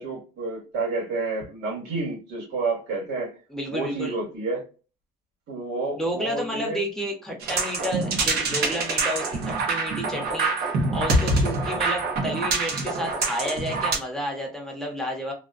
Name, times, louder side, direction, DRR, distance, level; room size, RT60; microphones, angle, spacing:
voice 1, 0.0-3.3 3.7-4.6 5.5-6.8 11.7-11.8, right 3 dB, 85° right, 1.4 m, -30 dB
voice 2, 3.5-4.1 6.0-15.3, equal, 5° left, 0.8 m, -31 dB
sound 1, 7.4-14.0, right 3 dB, 65° right, 1.0 m, -25 dB
2.6 x 2.1 x 2.4 m
cardioid pair, 110°, 17 cm